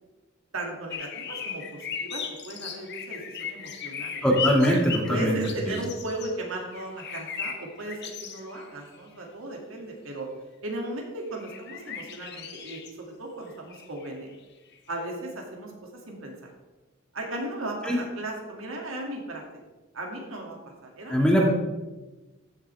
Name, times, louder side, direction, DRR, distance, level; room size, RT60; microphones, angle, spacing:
voice 1, 0.5-4.2 5.1-10.3 10.6-14.4 14.9-16.5 17.1-19.4 19.9-21.5, right 1 dB, 85° right, 0 dB, 2.5 m, -36 dB
sound 1, 0.9-6.3 6.7-8.7 8.9-9.0 11.3-12.9 13.5-14.2 14.7-14.9, left 7 dB, 55° left, 1.2 m, -37 dB
voice 2, 4.2-5.4 17.8-18.0 21.1-21.5, equal, 5° left, -2 dB, 2.0 m, -21 dB
15.0 x 7.8 x 3.5 m, 1.2 s
head